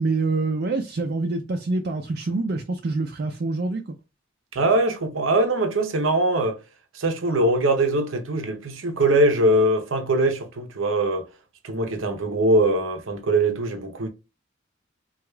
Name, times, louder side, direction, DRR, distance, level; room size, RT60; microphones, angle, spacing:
voice 1, 0.0-4.0, right 3 dB, 50° right, 0.4 m, -26 dB
voice 2, 4.5-6.6 6.9-11.3 11.6-14.1, right 1 dB, 85° right, 0.7 m, -22 dB
4.7 x 2.4 x 2.2 m
head